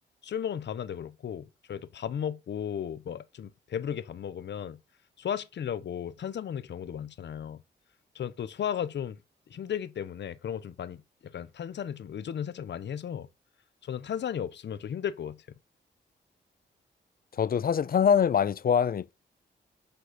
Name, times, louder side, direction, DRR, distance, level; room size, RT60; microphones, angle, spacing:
voice 1, 0.2-4.8 5.2-7.6 8.1-9.2 9.5-13.3 13.8-15.4, left 9 dB, 70° left, 1.0 m, -35 dB
voice 2, 17.4-19.1, left 7 dB, 50° left, 0.6 m, -24 dB
10.0 x 4.3 x 5.2 m
cardioid pair, 70°, 19 cm